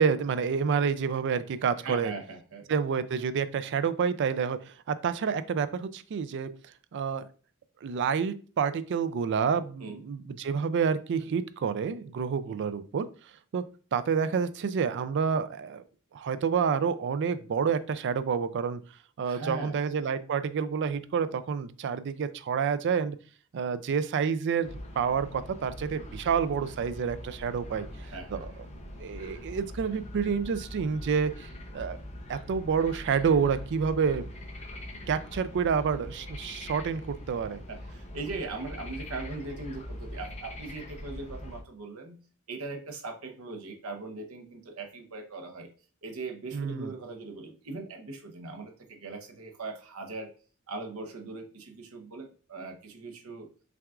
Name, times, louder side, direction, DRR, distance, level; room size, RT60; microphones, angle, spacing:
voice 1, 0.0-2.1 2.7-6.5 6.9-7.3 7.8-13.1 13.5-13.6 13.9-15.8 16.1-18.8 19.2-23.2 23.5-27.9 28.3-28.5 29.0-32.0 32.3-34.3 35.1-37.0 37.3-37.6 46.5-46.9, right 6 dB, 55° right, 13 dB, 0.3 m, -28 dB
voice 2, 1.8-2.7 9.8-10.0 12.5-12.8 19.2-19.9 28.0-28.5 37.7-42.2 42.5-45.7 46.0-50.3 50.7-53.5, right 3 dB, 70° right, 4 dB, 0.8 m, -40 dB
sound 1, 24.6-41.6, left 1 dB, 30° left, 0.6 m, -42 dB
5.8 x 2.4 x 2.4 m, 0.39 s
head